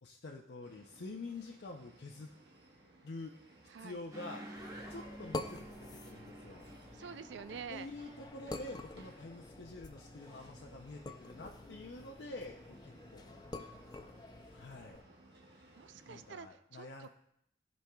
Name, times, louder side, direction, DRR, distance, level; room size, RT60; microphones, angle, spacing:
voice 1, 0.0-2.3 3.0-3.3 3.8-4.5 4.9-6.6 7.7-13.3 14.5-15.0 16.1-17.1, left 2 dB, 75° left, 0 dB, 0.6 m, -47 dB
sound 1, 0.6-16.4, right 1 dB, 65° right, 1.3 m, -61 dB
sound 2, 4.1-9.1, right 1 dB, 20° right, 1.0 m, -51 dB
sound 3, 4.6-15.0, left 2 dB, 20° left, 0.4 m, -48 dB
voice 2, 6.9-7.9 15.7-17.1, right 6 dB, 85° right, 13 dB, 0.4 m, -47 dB
14.5 x 5.2 x 2.3 m, 0.75 s
head